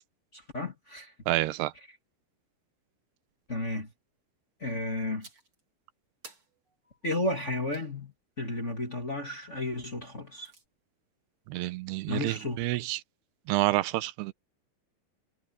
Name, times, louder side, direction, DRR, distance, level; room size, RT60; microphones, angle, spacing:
voice 1, 0.3-1.1 3.5-3.9 4.6-5.3 7.0-10.5 12.1-12.7, left 2 dB, 25° left, 2.0 m, -33 dB
voice 2, 1.3-1.7 11.5-13.0 13.5-14.3, right 17 dB, 90° right, 2.8 m, -28 dB
sound 1, 5.2-5.6 6.2-7.9 10.0-10.7, right 4 dB, 35° right, 4.5 m, -54 dB
omnidirectional pair, 4.6 m